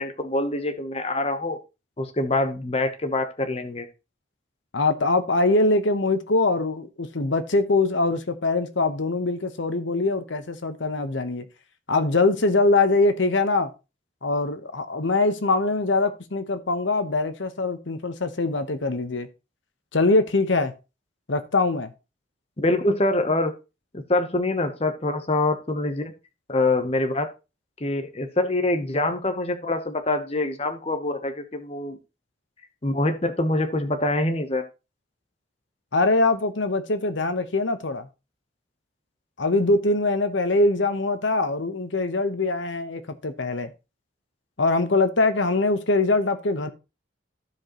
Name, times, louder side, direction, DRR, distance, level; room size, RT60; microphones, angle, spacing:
voice 1, 0.0-1.6 2.0-3.9 22.6-23.5 23.9-26.1 26.5-27.3 27.8-32.0 32.8-34.6, left 2 dB, 30° left, 0.9 m, -25 dB
voice 2, 4.7-11.5 11.9-13.7 14.2-19.3 19.9-20.7 21.3-21.9 35.9-38.1 39.4-43.7 44.6-46.7, left 2 dB, 75° left, 1.0 m, -23 dB
15.0 x 5.0 x 3.0 m
head